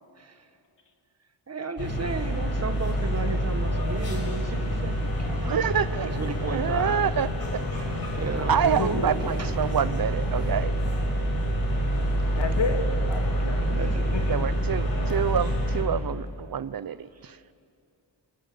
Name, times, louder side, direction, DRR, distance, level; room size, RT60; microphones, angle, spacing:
voice 1, 1.5-5.4 6.0-7.1 8.1-8.9 9.4-9.5 11.9-12.2 13.6-14.3, right 3 dB, 35° right, 1.5 m, -34 dB
sound 1, 1.8-15.8, equal, 50° left, 5.5 m, -27 dB
voice 2, 5.4-7.9 8.5-10.7 14.3-17.4, right 8 dB, 50° right, 0.6 m, -27 dB
sound 2, 8.2-10.8, right 1 dB, 15° right, 4.3 m, -41 dB
voice 3, 8.8-9.2 12.4-13.8 14.1-14.5, left 4 dB, 65° left, 3.0 m, -31 dB
29.5 x 23.5 x 7.7 m
wide cardioid pair, 180°, 45 cm